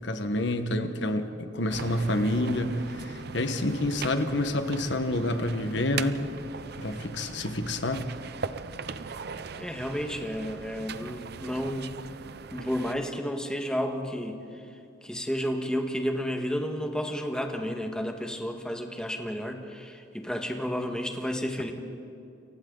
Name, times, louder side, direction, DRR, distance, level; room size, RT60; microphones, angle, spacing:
voice 1, 0.0-6.2 6.8-8.1, left 1 dB, 70° left, 8 dB, 1.5 m, -28 dB
sound 1, 1.7-12.9, right 5 dB, 60° right, 0.7 m, -39 dB
voice 2, 9.6-11.9 12.5-14.6 15.0-21.7, equal, 5° left, 3 dB, 1.7 m, -31 dB
29.5 x 24.5 x 4.0 m, 2.7 s
head